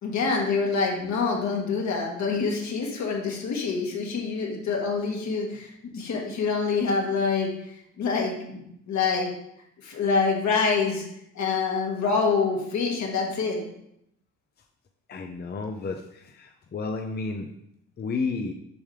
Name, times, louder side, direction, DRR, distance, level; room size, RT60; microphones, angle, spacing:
voice 1, 0.0-7.5 8.0-9.3 9.8-11.0 11.3-13.6, left 4 dB, 70° left, 0 dB, 1.7 m, -26 dB
voice 2, 15.1-17.5 18.0-18.5, left 4 dB, 35° left, 4 dB, 0.6 m, -31 dB
6.9 x 5.2 x 3.3 m, 0.76 s
cardioid pair, 90°, 30 cm